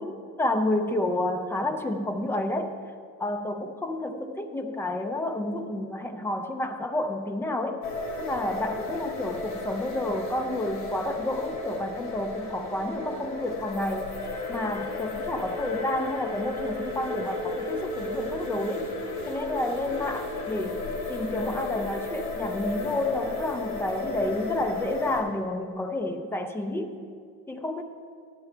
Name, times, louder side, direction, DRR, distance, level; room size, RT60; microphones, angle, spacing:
voice 1, 0.0-2.8 3.2-7.9 8.2-14.2 14.5-18.9 19.3-27.0 27.5-27.8, left 1 dB, 5° left, 6 dB, 0.4 m, -30 dB
sound 1, 7.8-25.2, left 2 dB, 65° left, 2.4 m, -34 dB
13.5 x 9.4 x 3.3 m, 2.2 s
cardioid pair, 145°, 35 cm